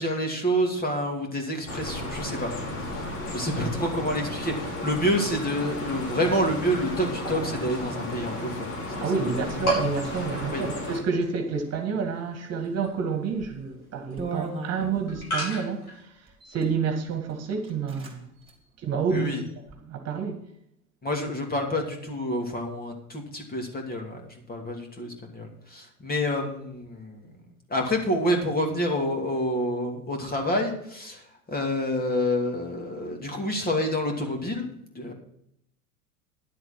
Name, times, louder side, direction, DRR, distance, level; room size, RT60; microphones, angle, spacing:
voice 1, 0.0-2.5 2.8-9.0 10.5-10.6 19.1-19.4 21.0-27.3 27.7-31.2 31.5-34.7 34.9-35.1, equal, 20° left, 2 dB, 2.7 m, -28 dB
sound 1, 1.7-11.0, left 1 dB, 65° left, 3.9 m, -34 dB
sound 2, 7.2-8.3 8.6-8.7 9.1-9.3 9.6-16.0, equal, 90° left, 5.0 m, -33 dB
voice 2, 9.0-16.1 16.5-18.3 18.8-19.4 19.9-20.4, right 5 dB, 35° right, 5 dB, 2.0 m, -29 dB
sound 3, 13.4-13.6 14.2-15.3 16.3-16.7 17.3-17.4 17.6-18.1 18.4-18.5 19.0-19.7, right 3 dB, 10° right, 3.3 m, -37 dB
11.0 x 7.7 x 6.0 m, 0.73 s
hypercardioid pair, 85°, 43 cm